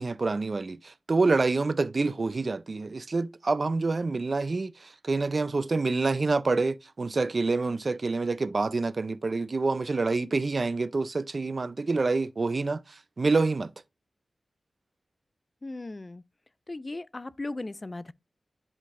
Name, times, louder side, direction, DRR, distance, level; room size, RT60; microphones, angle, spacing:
voice 1, 0.0-13.7, right 3 dB, 45° right, 0.4 m, -27 dB
voice 2, 15.6-16.2 16.7-18.1, left 2 dB, 30° left, 0.3 m, -37 dB
10.5 x 3.9 x 2.5 m
wide cardioid pair, 105°, 0 cm